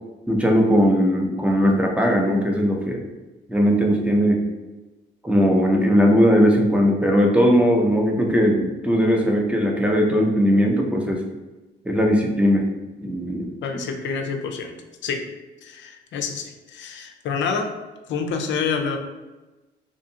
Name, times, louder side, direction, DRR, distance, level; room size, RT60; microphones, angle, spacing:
voice 1, 0.3-3.0 3.5-4.4 5.2-11.2 11.9-12.7 13.0-13.5, equal, 5° right, 0 dB, 0.5 m, -19 dB
voice 2, 13.6-14.7 15.0-15.3 15.6-17.7 18.1-19.0, left 5 dB, 70° left, 5 dB, 0.4 m, -27 dB
2.7 x 2.4 x 2.6 m, 1.1 s
cardioid pair, 90°, 20 cm